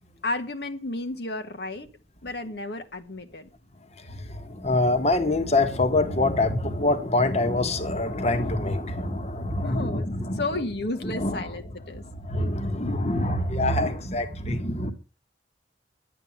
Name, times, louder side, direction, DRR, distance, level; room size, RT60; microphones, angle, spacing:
voice 1, 0.2-1.9 2.2-3.5 9.6-10.1 10.4-12.0, left 2 dB, 65° left, 1.5 m, -32 dB
voice 2, 3.8-10.6 11.0-11.6 11.9-14.9, left 2 dB, 35° left, 1.6 m, -25 dB
11.5 x 9.3 x 7.3 m
head